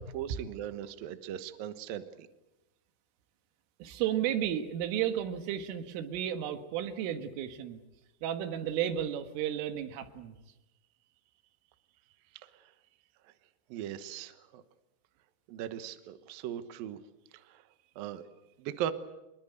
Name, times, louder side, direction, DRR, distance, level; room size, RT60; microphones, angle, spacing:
voice 1, 0.0-2.3 12.3-12.5 13.7-14.6 15.5-17.0 17.3-17.6 18.0-18.3 18.6-18.9, right 10 dB, 70° right, 11 dB, 2.4 m, -39 dB
voice 2, 3.8-7.8 8.2-10.4, right 10 dB, 90° right, 9 dB, 4.2 m, -33 dB
25.0 x 22.0 x 8.1 m, 1.0 s
omnidirectional pair, 5.6 m